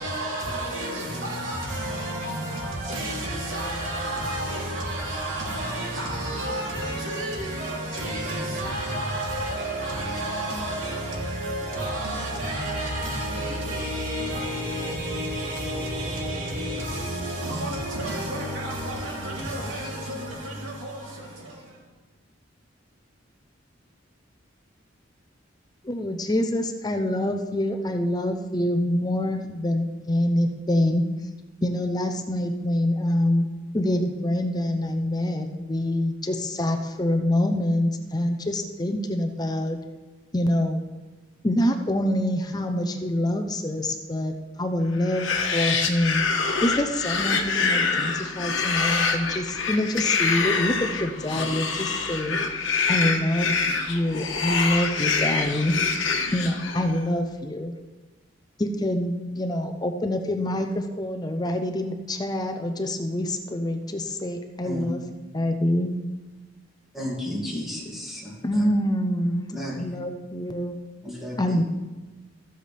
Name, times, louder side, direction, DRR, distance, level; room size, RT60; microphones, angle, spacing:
voice 1, 0.0-21.8, right 1 dB, 85° right, 3.2 m, -30 dB
voice 2, 25.8-31.0 31.6-33.5 33.7-39.8 40.3-40.8 41.4-46.2 46.6-52.4 52.9-55.7 56.3-57.7 58.6-65.0 65.3-65.9 68.4-69.5 69.7-70.8 71.4-71.6, left 1 dB, 20° left, 0.6 m, -26 dB
sound 1, 45.0-57.0, left 4 dB, 75° left, 1.3 m, -26 dB
voice 3, 66.9-68.3 69.5-69.8 71.0-71.6, left 1 dB, ahead, 2.3 m, -33 dB
14.0 x 7.9 x 3.4 m
head